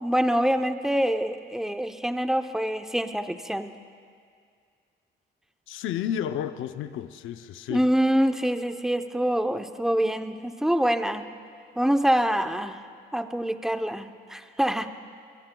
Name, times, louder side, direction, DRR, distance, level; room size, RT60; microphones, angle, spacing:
voice 1, 0.0-3.7 7.7-11.3 11.8-12.8 13.1-14.9, equal, ahead, 8 dB, 0.7 m, -25 dB
voice 2, 5.7-7.9, left 10 dB, 85° left, 10 dB, 0.6 m, -31 dB
23.0 x 22.0 x 2.3 m, 2.2 s
cardioid pair, 90°, 20 cm